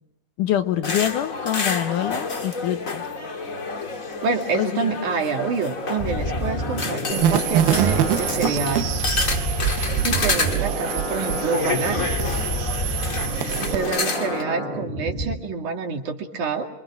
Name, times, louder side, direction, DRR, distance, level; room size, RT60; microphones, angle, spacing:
voice 1, 0.4-3.0 4.5-4.8, left 11 dB, 70° left, 8 dB, 2.4 m, -25 dB
sound 1, 0.8-14.4, left 4 dB, 35° left, 1.5 m, -29 dB
voice 2, 4.2-8.9 9.7-12.1 13.6-16.7, right 5 dB, 60° right, 3 dB, 3.5 m, -27 dB
sound 2, 6.0-15.4, equal, 15° left, 2.6 m, -30 dB
sound 3, 7.1-13.9, right 11 dB, 85° right, 2.8 m, -25 dB
27.5 x 24.0 x 6.2 m, 0.84 s
omnidirectional pair, 4.1 m